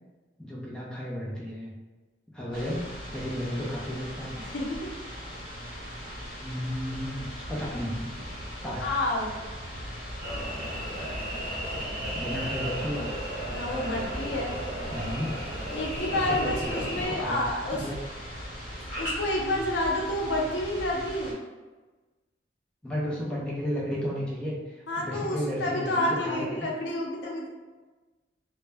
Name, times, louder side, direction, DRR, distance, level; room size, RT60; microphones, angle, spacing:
voice 1, 0.4-1.7 2.3-2.9 3.1-4.3 6.4-8.3 8.6-8.9 12.1-13.1 14.9-15.3 16.2-18.0 22.8-26.7, equal, 5° left, -6 dB, 0.4 m, -33 dB
sound 1, 2.5-21.3, equal, 50° left, 1.0 m, -39 dB
voice 2, 4.4-4.9 8.8-9.5 13.5-14.5 15.7-17.9 19.0-21.4 24.9-27.5, left 1 dB, 80° left, -2 dB, 0.6 m, -29 dB
sound 2, 10.2-17.1, right 1 dB, 40° right, 0.9 m, -35 dB
2.1 x 2.0 x 3.3 m, 1.3 s
head